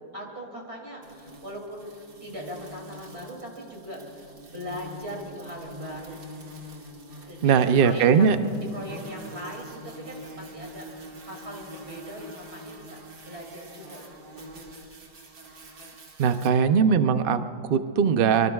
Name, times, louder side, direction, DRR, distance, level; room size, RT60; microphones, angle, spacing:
voice 1, 0.1-1.9 2.2-6.2 7.2-14.3 16.2-16.6, equal, 35° right, -1 dB, 3.1 m, -40 dB
sound 1, 1.0-16.5, right 1 dB, 55° right, 2.2 m, -45 dB
voice 2, 7.4-8.4 16.2-18.5, right 6 dB, 80° right, 9 dB, 0.5 m, -20 dB
25.0 x 24.5 x 2.4 m, 2.7 s
omnidirectional pair, 1.9 m